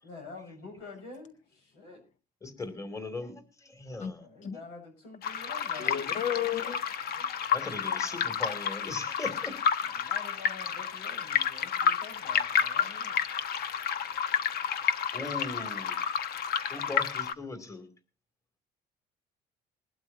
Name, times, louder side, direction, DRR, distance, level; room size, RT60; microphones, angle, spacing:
voice 1, 0.0-2.0 4.2-6.2 9.8-13.2 14.3-14.4, left 4 dB, 85° left, 4 dB, 7.2 m, -47 dB
voice 2, 2.4-4.3 5.7-6.8 7.1-7.2 7.5-9.5 13.7-14.2 15.1-16.0 16.7-17.9, left 2 dB, 20° left, 9 dB, 2.7 m, -40 dB
sound 1, 5.2-17.3, left 7 dB, 65° left, 1.2 m, -30 dB
voice 3, 5.8-6.8, left 10 dB, 45° left, 12 dB, 0.7 m, -32 dB
21.0 x 12.0 x 2.7 m, 0.34 s
cardioid pair, 110°, 17 cm